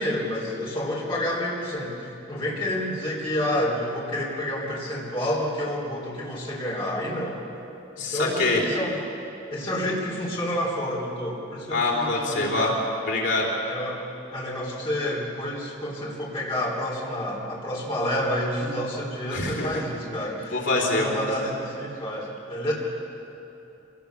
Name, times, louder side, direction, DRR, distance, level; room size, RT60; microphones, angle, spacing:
voice 1, 0.0-7.4 8.1-9.0 9.5-12.8 13.7-14.0 14.3-22.7, left 1 dB, 25° left, -4 dB, 3.7 m, -29 dB
voice 2, 8.0-8.6 11.7-12.7 13.1-13.5 19.3-19.8 20.5-21.5, left 2 dB, 75° left, -2 dB, 3.9 m, -25 dB
25.5 x 18.0 x 7.0 m, 3.0 s
head